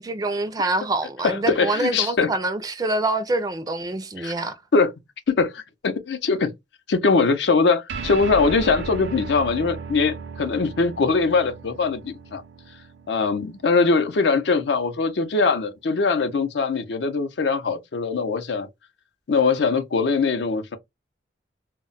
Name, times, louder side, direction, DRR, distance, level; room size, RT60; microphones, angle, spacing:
voice 1, 0.0-4.6, right 2 dB, 20° right, 0.3 m, -25 dB
voice 2, 1.2-2.3 4.2-4.3 4.7-4.9 5.3-6.5 6.9-12.4 13.1-18.7 19.3-20.8, left 4 dB, 70° left, 0.5 m, -22 dB
sound 1, 7.9-14.7, right 4 dB, 80° right, 0.5 m, -36 dB
2.2 x 2.0 x 3.7 m
head